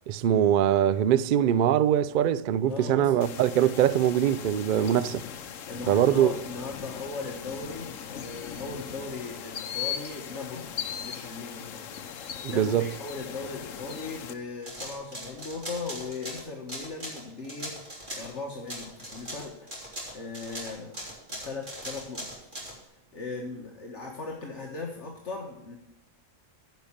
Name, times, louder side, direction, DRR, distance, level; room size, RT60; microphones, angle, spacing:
voice 1, 0.1-5.2 5.9-6.3 12.4-12.9, right 10 dB, 65° right, 0.5 m, -23 dB
voice 2, 2.6-3.2 3.8-3.9 4.7-5.0 5.7-10.7 11.0-19.7 20.1-21.0 21.3-22.3 23.1-25.8, left 3 dB, 60° left, 1.5 m, -38 dB
sound 1, 3.2-14.3, left 8 dB, 80° left, 1.2 m, -39 dB
sound 2, 14.6-18.4 18.7-22.7, right 1 dB, 35° right, 3.4 m, -39 dB
10.0 x 5.5 x 7.2 m
omnidirectional pair, 1.3 m